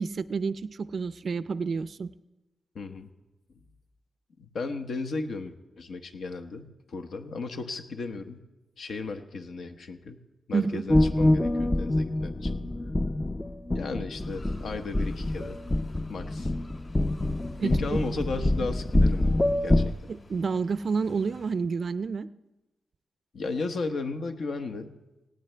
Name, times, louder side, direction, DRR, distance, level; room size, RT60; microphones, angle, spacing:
voice 1, 0.0-2.1 10.5-10.8 17.6-17.7 20.1-22.3, right 5 dB, 50° right, 15 dB, 0.4 m, -29 dB
voice 2, 2.7-3.1 4.4-8.4 8.8-10.2 10.5-12.7 13.7-15.6 16.1-16.5 17.6-20.1 23.3-24.9, left 3 dB, 70° left, 6 dB, 1.1 m, -35 dB
sound 1, 10.9-19.9, left 1 dB, 15° left, 0.4 m, -26 dB
sound 2, 14.2-21.5, left 2 dB, 50° left, 2.7 m, -53 dB
18.5 x 17.0 x 3.4 m, 1.0 s
wide cardioid pair, 150°, 0 cm